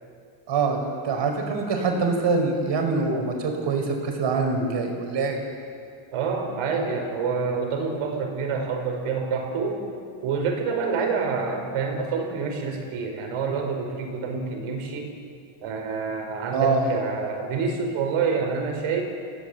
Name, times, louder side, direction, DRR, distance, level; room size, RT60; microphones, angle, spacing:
voice 1, 0.5-0.8 1.0-5.4 16.5-16.9, right 4 dB, 55° right, 3 dB, 5.1 m, -24 dB
voice 2, 6.1-9.8 10.2-15.1 15.6-19.0, right 5 dB, 85° right, 3 dB, 5.2 m, -27 dB
29.5 x 17.0 x 8.1 m, 2.3 s
cardioid pair, 135°, 50 cm